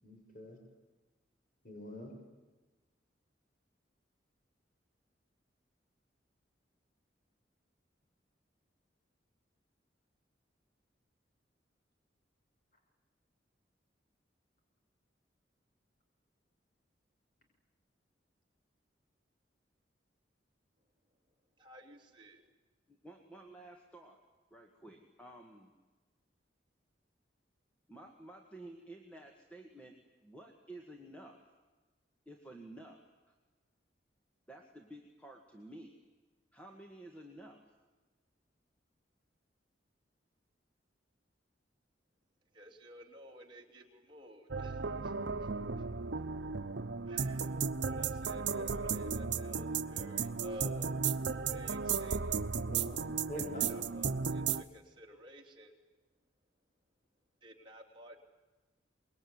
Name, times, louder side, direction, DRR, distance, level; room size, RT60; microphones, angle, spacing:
voice 1, 0.0-0.6 1.6-2.1 48.5-49.1 52.7-53.7, left 1 dB, 45° left, 2 dB, 6.8 m, -46 dB
voice 2, 21.6-22.5 42.5-45.5 45.8-45.9 47.1-51.0 51.5-52.4 53.3-55.7 57.4-58.2, equal, 25° right, 1 dB, 3.3 m, -53 dB
voice 3, 22.9-24.2 24.5-25.7 27.9-31.5 32.3-33.0 34.5-36.0 36.5-37.7, right 1 dB, 5° left, 2 dB, 2.1 m, -52 dB
sound 1, 44.5-54.6, right 5 dB, 75° right, 0.9 m, -35 dB
25.0 x 22.0 x 9.7 m, 1.2 s
head